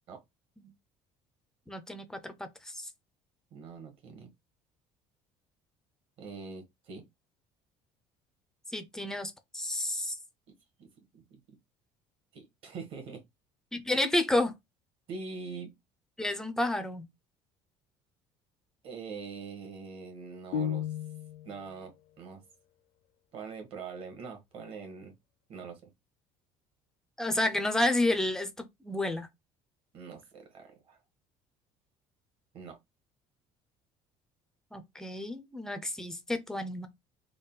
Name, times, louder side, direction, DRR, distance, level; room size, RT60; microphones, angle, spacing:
voice 1, 1.7-2.9 8.7-10.2 13.7-14.5 16.2-17.0 27.2-29.3 34.7-36.9, left 1 dB, 5° left, 0.4 m, -31 dB
voice 2, 3.5-4.3 6.2-7.0 10.5-10.6 10.8-11.4 12.3-13.2 15.1-15.7 18.8-20.9 21.4-21.9 22.2-22.4 23.3-25.1 25.5-25.9 29.9-31.0 32.5-32.8, right 5 dB, 45° right, 1.3 m, -43 dB
sound 1, 20.5-21.6, left 8 dB, 65° left, 0.4 m, -33 dB
3.7 x 2.2 x 3.8 m
cardioid pair, 175°, 13 cm